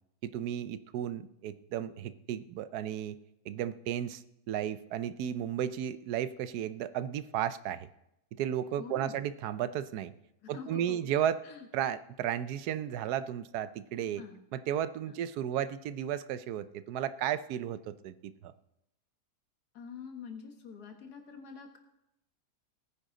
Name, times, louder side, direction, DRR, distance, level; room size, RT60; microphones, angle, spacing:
voice 1, 0.2-3.2 3.5-7.9 8.3-10.1 10.5-11.4 11.7-14.2 14.5-18.5, right 10 dB, 75° right, 14 dB, 1.1 m, -34 dB
voice 2, 8.8-9.2 10.4-11.1 11.4-11.7 14.2-14.4 15.1-15.2 19.7-21.8, left 6 dB, 70° left, 4 dB, 2.0 m, -46 dB
18.0 x 9.9 x 3.8 m, 0.85 s
omnidirectional pair, 1.7 m